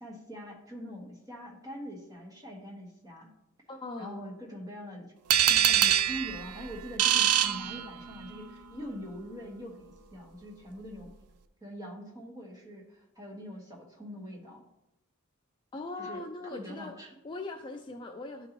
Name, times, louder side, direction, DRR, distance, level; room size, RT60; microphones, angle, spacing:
voice 1, 0.0-3.3 4.0-5.1 5.4-11.1 11.6-14.6 16.0-17.1, equal, 15° right, -2 dB, 1.3 m, -43 dB
voice 2, 3.7-4.2 15.7-16.9 17.2-18.5, left 3 dB, 20° left, 3 dB, 0.3 m, -40 dB
sound 1, 5.3-8.3, right 10 dB, 85° right, 0.4 m, -25 dB
11.5 x 3.9 x 3.0 m, 0.87 s
head